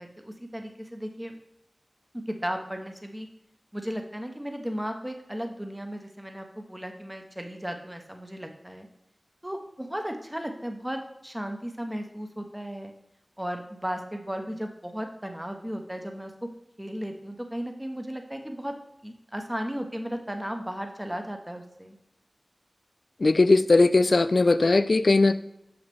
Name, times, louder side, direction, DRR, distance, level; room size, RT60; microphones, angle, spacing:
voice 1, 0.0-1.4 2.3-3.3 3.7-8.9 9.4-12.9 13.4-16.3 16.8-18.7 19.0-22.0, equal, 15° right, 4 dB, 0.9 m, -35 dB
voice 2, 23.2-25.3, left 3 dB, 70° left, 13 dB, 0.3 m, -19 dB
6.4 x 5.9 x 3.5 m, 0.82 s
wide cardioid pair, 60°, 0 cm